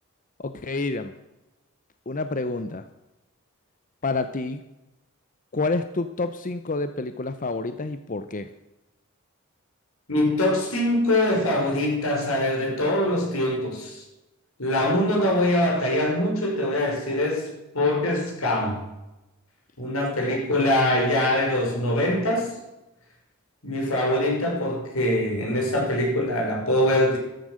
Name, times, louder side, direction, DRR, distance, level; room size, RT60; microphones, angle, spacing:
voice 1, 0.4-1.1 2.1-2.9 4.0-4.6 5.5-8.5 20.2-20.7, left 3 dB, 40° left, 10 dB, 0.8 m, -29 dB
voice 2, 10.1-14.0 14.6-17.5 17.7-18.8 19.8-22.5 23.6-27.2, left 1 dB, 85° left, 0 dB, 6.0 m, -23 dB
14.0 x 13.5 x 6.4 m, 0.98 s
head